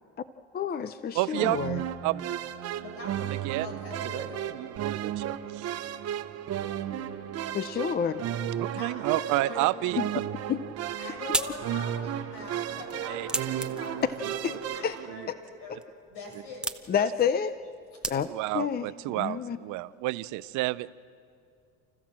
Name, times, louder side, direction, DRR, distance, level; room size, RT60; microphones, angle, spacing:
voice 1, 0.5-1.8 7.5-8.2 10.5-10.6 14.8-14.9 15.3-15.4 15.7-15.8 16.9-17.6 18.1-18.9 19.1-19.6, left 7 dB, 30° left, 13 dB, 0.6 m, -29 dB
voice 2, 1.1-1.6 2.0-2.2 3.2-3.7 4.1-4.3 4.5-5.7 8.6-10.2 13.1-13.3 14.2-14.3 15.1-15.3 16.9-17.0 18.3-20.9, right 19 dB, 70° right, 17 dB, 0.6 m, -30 dB
sound 1, 1.3-15.1, right 10 dB, 50° right, 1.2 m, -34 dB
voice 3, 2.8-3.2 3.6-4.5 8.8-9.8 11.0-15.7 16.1-16.6, left 2 dB, 75° left, 0 dB, 7.5 m, -42 dB
sound 2, 10.6-18.6, right 1 dB, 5° right, 1.0 m, -38 dB
30.0 x 15.0 x 7.4 m, 2.4 s
supercardioid pair, 95°, 31 cm